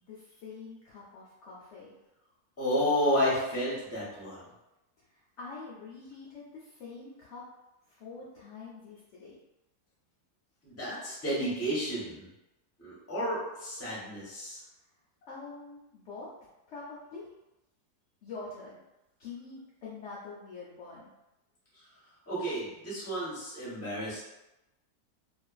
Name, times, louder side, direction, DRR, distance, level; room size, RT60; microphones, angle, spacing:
voice 1, 0.1-1.9 5.1-7.4 7.9-9.4 15.3-16.3 16.7-17.3 18.2-18.8 19.2-21.1, left 4 dB, 65° left, -6 dB, 0.7 m, -45 dB
voice 2, 2.6-4.5 10.6-12.3 12.8-14.6 22.3-24.2, equal, 15° left, -8 dB, 0.7 m, -31 dB
2.5 x 2.4 x 2.3 m, 0.93 s
omnidirectional pair, 1.7 m